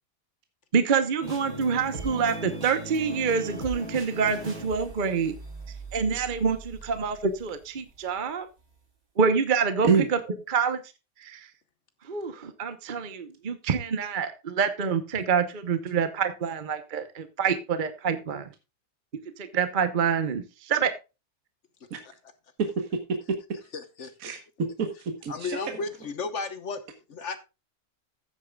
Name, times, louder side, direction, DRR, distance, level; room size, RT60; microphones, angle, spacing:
voice 1, 0.7-5.3 5.9-8.5 9.2-9.9 10.5-10.8 11.2-11.5 12.1-18.5 19.4-20.9, right 6 dB, 35° right, 0.9 m, -26 dB
sound 1, 1.2-8.0, right 2 dB, 75° right, 5.1 m, -39 dB
voice 2, 22.6-23.0 23.3-23.4 24.2-25.6, right 5 dB, 55° right, 1.6 m, -26 dB
voice 3, 23.7-24.1 25.3-26.8 27.1-27.4, left 4 dB, 50° left, 1.2 m, -33 dB
15.0 x 8.3 x 2.3 m
omnidirectional pair, 1.8 m